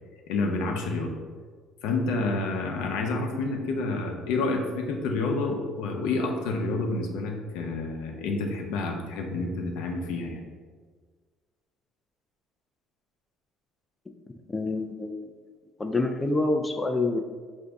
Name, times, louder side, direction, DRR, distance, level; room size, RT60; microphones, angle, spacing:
voice 1, 0.3-1.1 1.8-10.4, left 3 dB, 85° left, 2 dB, 0.6 m, -29 dB
voice 2, 14.5-15.2 15.8-17.2, left 2 dB, 15° left, 5 dB, 0.3 m, -27 dB
5.1 x 2.6 x 3.4 m, 1.5 s
cardioid pair, 110°, 0 cm